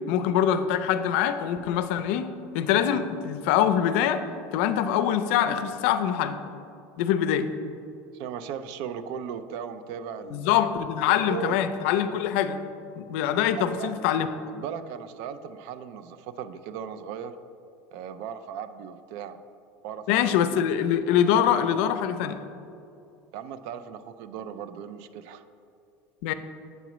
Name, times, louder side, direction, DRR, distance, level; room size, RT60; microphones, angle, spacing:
voice 1, 0.1-4.2 4.5-6.3 7.0-7.5 10.3-12.6 13.0-14.3 20.1-22.4 26.2-26.3, left 9 dB, 75° left, 10 dB, 0.4 m, -24 dB
voice 2, 8.1-10.7 11.1-11.6 13.7-14.0 14.5-17.3 17.9-19.4 19.8-20.2 23.3-25.4, right 8 dB, 65° right, 12 dB, 0.4 m, -37 dB
8.0 x 5.9 x 3.0 m, 2.7 s
cardioid pair, 145°, 7 cm